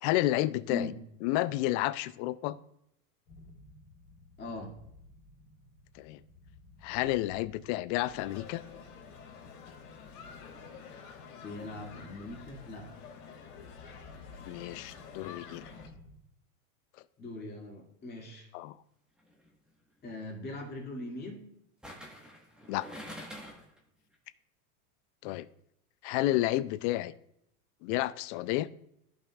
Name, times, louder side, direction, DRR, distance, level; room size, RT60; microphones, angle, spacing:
voice 1, 0.0-0.9 1.2-2.6 6.0-6.2 6.8-8.6 14.5-15.6 18.5-18.8 22.7-22.9 25.2-25.5 26.0-27.1 27.8-28.7, left 16 dB, 50° left, 16 dB, 0.5 m, -30 dB
sound 1, 3.3-16.2, left 2 dB, 65° left, 2.9 m, -55 dB
voice 2, 4.4-4.7 11.4-12.9 17.2-18.5 20.0-21.5, left 2 dB, 20° left, -2 dB, 2.4 m, -41 dB
sound 2, 8.0-15.9, left 6 dB, 90° left, 2.5 m, -49 dB
sound 3, 19.2-19.5 21.8-23.8 24.1-24.2, equal, ahead, 1.4 m, -46 dB
14.5 x 5.4 x 2.4 m, 0.77 s
supercardioid pair, 125°, 44 cm